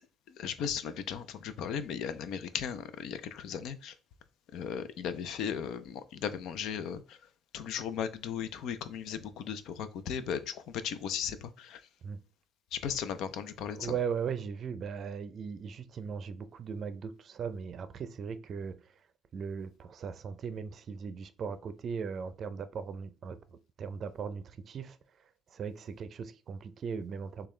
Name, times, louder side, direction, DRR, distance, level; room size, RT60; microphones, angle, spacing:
voice 1, 0.3-3.9 4.5-7.2 7.5-11.8 12.7-14.0, left 8 dB, 70° left, 0.6 m, -36 dB
voice 2, 13.7-18.8 19.3-23.4 23.8-25.0 25.5-27.5, right 6 dB, 45° right, 0.5 m, -38 dB
6.8 x 2.3 x 3.2 m
cardioid pair, 115°, 0 cm